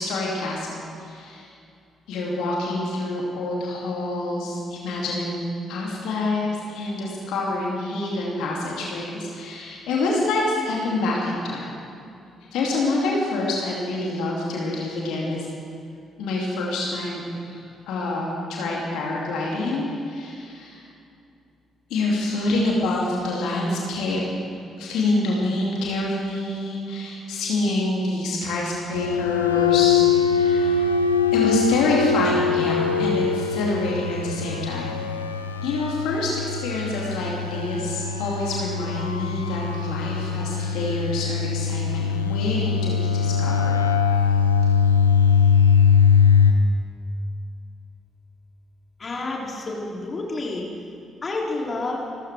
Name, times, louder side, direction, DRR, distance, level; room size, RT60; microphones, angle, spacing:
voice 1, 0.0-1.5 2.1-5.4 5.7-11.7 12.5-15.5 16.2-20.8 21.9-24.2 24.8-30.9 31.3-35.0 35.6-43.8 44.1-44.3, left 2 dB, 60° left, -3 dB, 2.7 m, -27 dB
sound 1, 28.9-46.5, left 6 dB, 85° left, 0.5 m, -21 dB
voice 2, 49.0-50.7 51.2-52.1, left 2 dB, 35° left, -2 dB, 3.0 m, -29 dB
28.0 x 14.0 x 3.5 m, 2.5 s
figure-of-eight pair, 40°, 0 cm